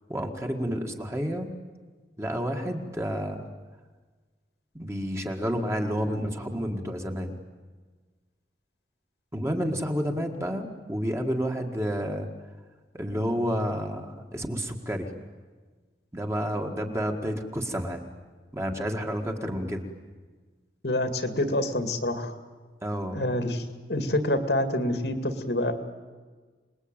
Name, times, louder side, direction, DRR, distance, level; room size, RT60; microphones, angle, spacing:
voice 1, 0.1-1.5 2.2-3.5 4.7-7.3 9.3-12.3 12.9-15.1 16.1-18.0 18.5-19.9 22.8-23.2, equal, 15° right, 3 dB, 1.9 m, -30 dB
voice 2, 20.8-22.4 23.1-25.7, left 1 dB, 75° left, 8 dB, 2.3 m, -27 dB
27.0 x 20.5 x 9.0 m, 1.4 s
head